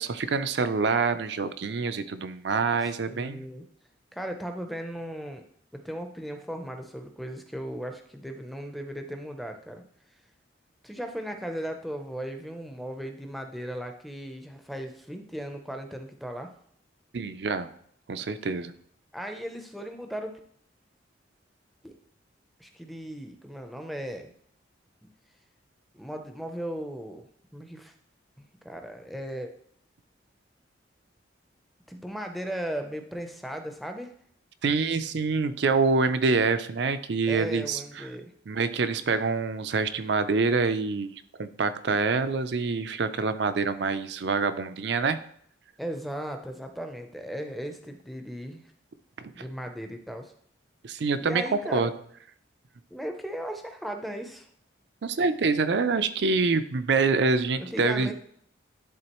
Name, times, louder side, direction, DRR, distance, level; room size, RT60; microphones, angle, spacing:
voice 1, 0.0-3.5 17.1-17.7 18.1-18.7 34.6-38.1 38.5-45.2 49.2-49.3 50.8-51.4 51.7-51.9 55.0-58.1, right 4 dB, 60° right, 11 dB, 0.5 m, -26 dB
voice 2, 2.8-3.6 4.1-5.4 5.7-9.8 10.8-16.5 19.1-20.3 21.8-21.9 22.6-24.3 25.0-25.1 25.9-27.3 27.5-27.9 28.6-29.5 31.9-34.1 37.3-38.3 45.8-48.7 49.3-50.3 51.2-51.9 52.9-54.5 57.6-58.1, equal, ahead, 4 dB, 0.5 m, -37 dB
11.0 x 3.8 x 3.0 m, 0.65 s
head